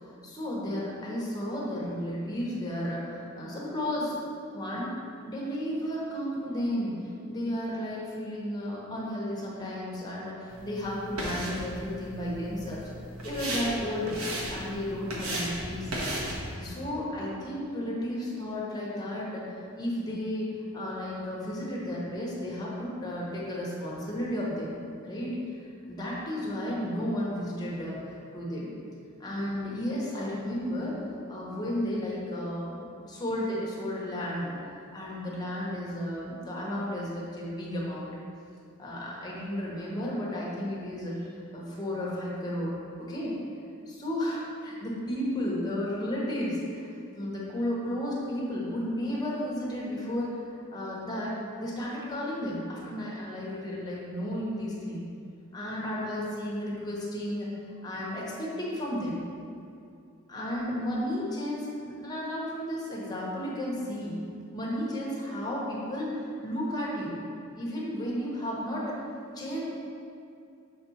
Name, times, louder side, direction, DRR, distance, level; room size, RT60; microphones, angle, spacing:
voice 1, 0.0-4.2 4.4-4.9 5.2-12.8 13.2-14.2 14.5-15.9 16.3-24.8 25.0-25.4 25.9-28.7 29.2-31.0 31.3-32.7 33.0-34.5 34.9-38.1 38.8-43.4 43.9-46.9 47.1-50.4 50.7-55.1 55.5-57.5 57.8-59.2 60.3-64.1 64.5-67.2 67.5-69.0 69.3-69.6, equal, 20° left, -6 dB, 1.3 m, -33 dB
sound 1, 10.5-16.6, right 1 dB, 85° right, 1.2 m, -36 dB
6.7 x 4.3 x 4.3 m, 2.5 s
head